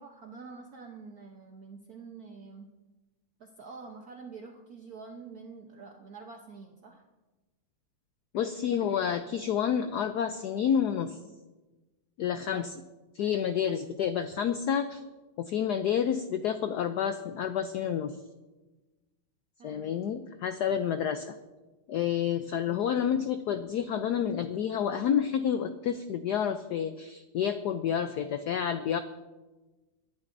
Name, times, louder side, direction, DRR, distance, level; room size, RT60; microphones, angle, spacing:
voice 1, 0.0-2.7 3.4-7.0 19.6-19.9 22.7-22.9, right 4 dB, 55° right, 2 dB, 1.2 m, -47 dB
voice 2, 8.3-11.2 12.2-12.8 13.1-15.0 15.4-18.2 19.6-21.4 21.9-29.0, left 8 dB, 85° left, 9 dB, 0.8 m, -29 dB
24.0 x 11.0 x 2.6 m, 1.2 s
omnidirectional pair, 2.4 m